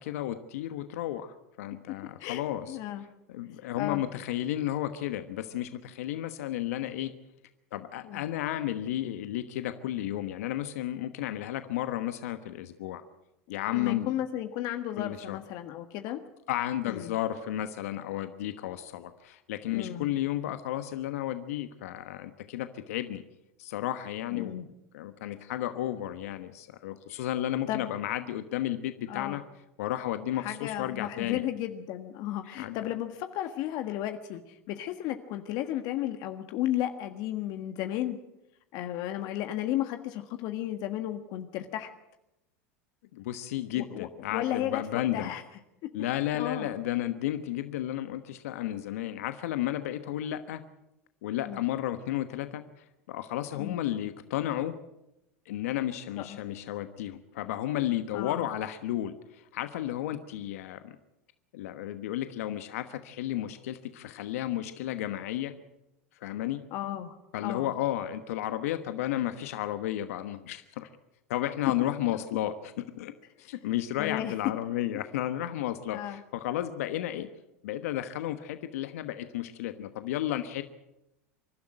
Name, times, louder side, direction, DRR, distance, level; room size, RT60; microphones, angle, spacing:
voice 1, 0.0-2.8 3.3-7.1 7.7-13.0 13.5-14.1 15.0-15.4 16.5-23.2 23.6-24.6 24.9-29.4 29.8-31.4 32.5-32.8 43.1-45.3 45.9-50.6 51.2-54.7 55.4-61.0 61.5-65.5 66.2-66.6 67.3-70.9 71.3-73.1 73.4-77.3 77.6-80.6, left 13 dB, 75° left, 10 dB, 1.2 m, -33 dB
voice 2, 2.7-3.0 3.8-4.0 8.0-8.3 13.7-16.2 16.8-17.1 19.7-20.1 24.3-24.7 27.1-27.2 27.7-27.9 29.1-29.4 30.3-38.2 38.7-41.9 43.7-44.8 45.1-45.4 46.3-46.7 51.4-51.6 53.5-53.8 56.2-56.4 58.1-58.5 66.7-67.7 74.0-74.3 75.9-76.2, left 12 dB, 55° left, 7 dB, 1.5 m, -34 dB
26.0 x 12.0 x 9.0 m, 0.90 s
hypercardioid pair, 95°, 8 cm